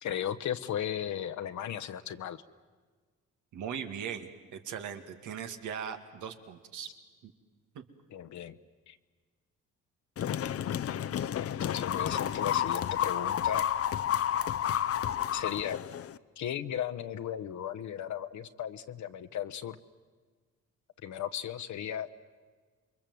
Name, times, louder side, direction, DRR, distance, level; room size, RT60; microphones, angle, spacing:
voice 1, 0.0-2.4 8.1-8.6 8.9-9.0 11.3-13.7 15.3-15.8 16.4-19.8 21.0-22.1, left 10 dB, 70° left, 10 dB, 1.1 m, -36 dB
voice 2, 3.5-6.9 7.2-7.3 7.7-7.8, right 8 dB, 80° right, 7 dB, 2.1 m, -39 dB
sound 1, 10.2-16.2, left 10 dB, 50° left, 0.7 m, -31 dB
28.0 x 22.5 x 7.8 m, 1.5 s
cardioid pair, 90°, 30 cm